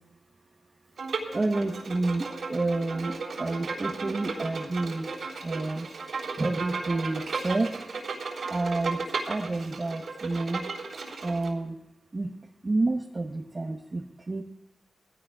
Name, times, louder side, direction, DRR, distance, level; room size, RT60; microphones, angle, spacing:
Bowed string instrument, 1.0-11.5, right 4 dB, 80° right, 3.7 m, -35 dB
voice 1, 1.3-5.1 5.4-5.9 6.4-7.7 8.5-9.0 9.3-10.6 11.2-11.8 12.1-12.3 12.6-14.4, right 2 dB, 35° right, 0 dB, 1.1 m, -29 dB
21.0 x 16.5 x 2.5 m, 0.84 s
wide cardioid pair, 80°, 0 cm